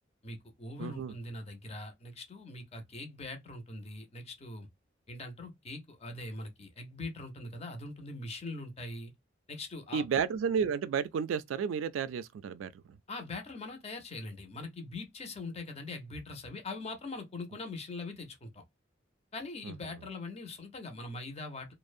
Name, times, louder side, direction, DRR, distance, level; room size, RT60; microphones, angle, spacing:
voice 1, 0.2-4.7 5.1-9.1 9.5-10.1 13.1-18.6 19.3-21.7, left 2 dB, 35° left, 0.6 m, -42 dB
voice 2, 0.8-1.1 9.9-12.7 19.6-19.7, right 7 dB, 80° right, 0.3 m, -32 dB
2.6 x 2.0 x 2.4 m
head